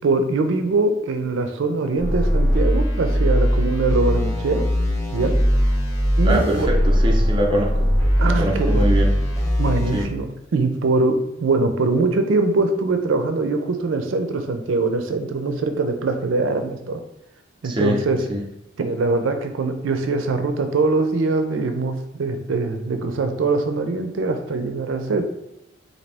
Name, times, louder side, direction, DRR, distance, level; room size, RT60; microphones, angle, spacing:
voice 1, 0.0-4.7 5.1-5.7 6.2-6.7 8.2-8.9 9.6-10.3 10.5-17.0 17.6-18.2 18.8-25.2, right 3 dB, 85° right, 7 dB, 0.4 m, -22 dB
sound 1, 2.0-10.0, equal, 15° left, 0.8 m, -20 dB
voice 2, 6.2-7.9 8.2-9.1 9.9-10.1 17.6-18.0 18.3-18.4, right 1 dB, 25° right, 0 dB, 0.5 m, -23 dB
4.0 x 2.7 x 3.3 m, 0.83 s
head